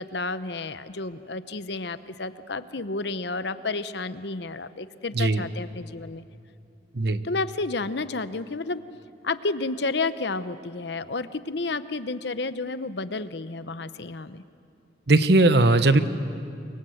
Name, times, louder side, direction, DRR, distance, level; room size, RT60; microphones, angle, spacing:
voice 1, 0.0-6.2 7.2-8.8 9.2-14.4, left 3 dB, 65° left, 13 dB, 0.9 m, -31 dB
voice 2, 15.1-16.0, right 2 dB, 60° right, 11 dB, 1.0 m, -18 dB
29.0 x 24.0 x 7.9 m, 2.5 s
head